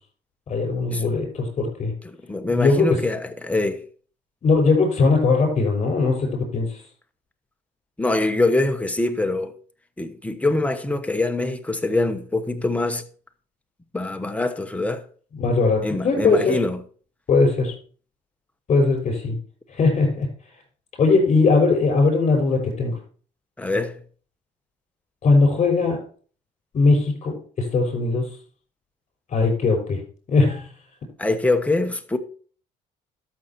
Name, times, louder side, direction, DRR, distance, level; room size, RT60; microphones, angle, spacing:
voice 1, 0.5-1.9 2.5-3.0 4.4-6.8 15.3-16.6 17.3-17.7 18.7-19.4 19.7-20.3 21.0-23.0 25.2-26.0 26.7-28.4 29.3-30.0 30.3-30.7, left 3 dB, 40° left, 5.8 m, -20 dB
voice 2, 2.0-3.8 8.0-9.5 10.0-13.0 13.9-15.0 15.8-16.8 23.6-24.0 31.2-32.2, left 2 dB, 10° left, 1.1 m, -24 dB
12.0 x 6.5 x 4.4 m
cardioid pair, 110°, 17 cm